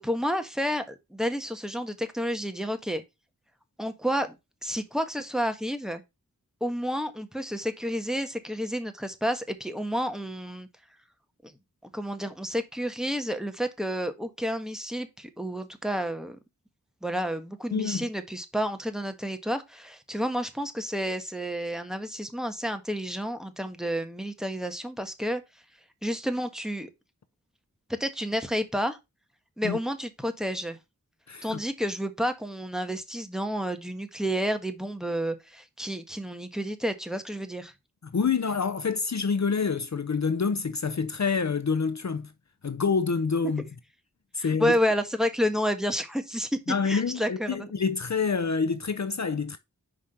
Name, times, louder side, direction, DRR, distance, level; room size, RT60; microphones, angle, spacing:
voice 1, 0.0-3.0 3.8-4.3 4.6-6.0 6.6-10.7 11.4-11.5 11.9-16.4 17.0-25.4 26.0-26.9 28.0-29.0 29.6-30.8 31.4-37.7 44.4-46.5 46.8-47.7, equal, ahead, 1.5 m, -30 dB
voice 2, 17.7-18.1 29.6-29.8 31.3-31.6 38.0-42.3 42.6-43.6 44.3-44.7 46.7-49.6, left 5 dB, 55° left, 0.6 m, -27 dB
5.9 x 4.9 x 5.7 m
wide cardioid pair, 40°, 34 cm